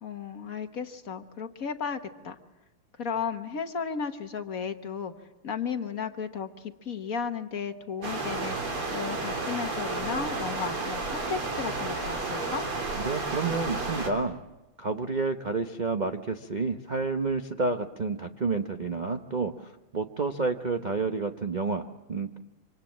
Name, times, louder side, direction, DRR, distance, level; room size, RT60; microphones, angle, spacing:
voice 1, 0.0-2.4 3.0-5.1 5.4-12.6, left 6 dB, 45° left, 7 dB, 1.4 m, -34 dB
sound 1, 8.0-14.1, right 3 dB, 85° right, 4.5 m, -32 dB
voice 2, 12.9-14.4 14.8-22.4, right 4 dB, 60° right, 6 dB, 0.4 m, -30 dB
26.5 x 25.5 x 7.4 m, 1.0 s
omnidirectional pair, 2.4 m